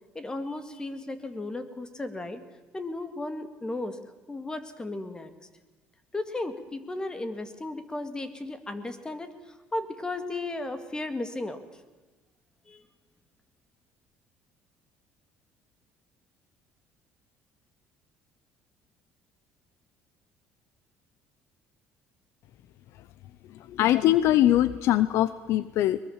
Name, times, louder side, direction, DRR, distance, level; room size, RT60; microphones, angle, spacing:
voice 1, 0.2-2.4 2.7-4.0 4.3-5.3 6.1-9.3 9.7-11.6 12.7-12.8, left 2 dB, 15° left, 10 dB, 2.1 m, -35 dB
voice 2, 23.5-26.0, left 13 dB, 70° left, 16 dB, 0.7 m, -22 dB
22.5 x 21.0 x 7.3 m, 1.2 s
cardioid pair, 105°, 5 cm